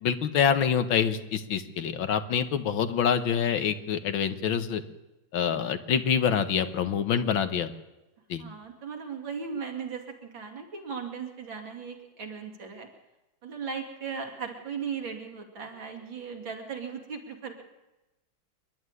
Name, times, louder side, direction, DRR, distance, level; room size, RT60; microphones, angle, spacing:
voice 1, 0.0-4.8 5.3-7.7 8.3-8.5, left 7 dB, 80° left, 10 dB, 2.0 m, -26 dB
voice 2, 8.4-12.9 13.4-17.6, right 6 dB, 75° right, 3 dB, 3.4 m, -37 dB
26.5 x 11.5 x 9.8 m, 1.0 s
omnidirectional pair, 2.1 m